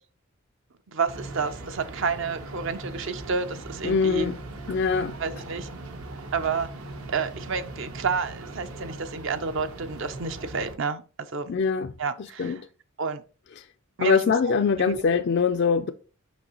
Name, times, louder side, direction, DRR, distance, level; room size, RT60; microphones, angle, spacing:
voice 1, 0.9-4.3 5.2-5.7 6.3-6.7 7.1-11.5 12.0-12.6 13.0-13.2 14.0-14.3 14.8-15.0, right 5 dB, 55° right, 0.6 m, -30 dB
sound 1, 1.1-10.8, right 2 dB, 75° right, 1.0 m, -39 dB
voice 2, 3.8-4.4 4.7-5.2 11.5-11.9 12.4-12.6 14.0-15.9, left 5 dB, 50° left, 0.3 m, -23 dB
6.1 x 5.5 x 3.0 m
head